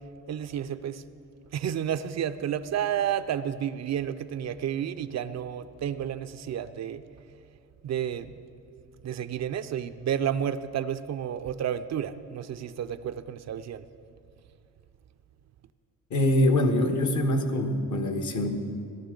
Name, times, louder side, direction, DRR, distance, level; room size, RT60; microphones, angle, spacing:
voice 1, 0.3-1.0 1.5-7.0 7.8-8.3 9.0-13.9, right 9 dB, 50° right, 12 dB, 0.5 m, -31 dB
voice 2, 16.1-18.5, left 1 dB, 60° left, 5 dB, 1.4 m, -24 dB
17.0 x 11.5 x 3.9 m, 2.5 s
cardioid pair, 100°, 34 cm